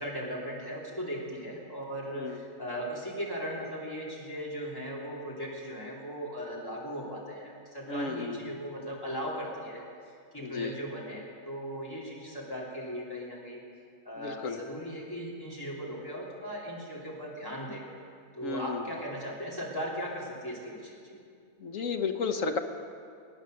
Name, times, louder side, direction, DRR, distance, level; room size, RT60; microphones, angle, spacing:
voice 1, 0.0-9.8 10.3-13.6 14.0-17.8 18.3-21.2, equal, 15° left, -5 dB, 3.1 m, -38 dB
voice 2, 7.9-8.6 10.4-10.8 14.2-14.6 18.4-18.8 21.6-22.6, left 4 dB, 65° left, 7 dB, 1.3 m, -33 dB
20.0 x 9.4 x 6.4 m, 2.3 s
omnidirectional pair, 1.5 m